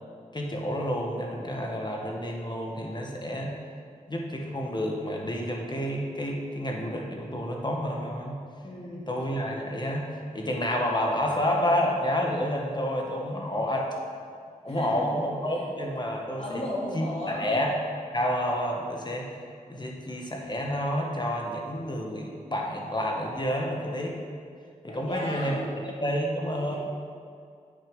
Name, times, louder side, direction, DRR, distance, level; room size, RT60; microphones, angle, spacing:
voice 1, 0.3-3.6 4.1-8.4 8.9-14.0 14.6-16.6 16.9-17.7 18.1-19.3 19.7-24.2 24.8-25.5 25.8-26.8, equal, 30° left, 0 dB, 1.7 m, -29 dB
voice 2, 8.6-9.1 14.7-15.1 15.5-15.6 16.4-17.5 24.8-25.8 26.5-26.8, left 1 dB, 50° left, -6 dB, 2.6 m, -35 dB
8.7 x 6.2 x 5.5 m, 2.2 s
cardioid pair, 55°, 14 cm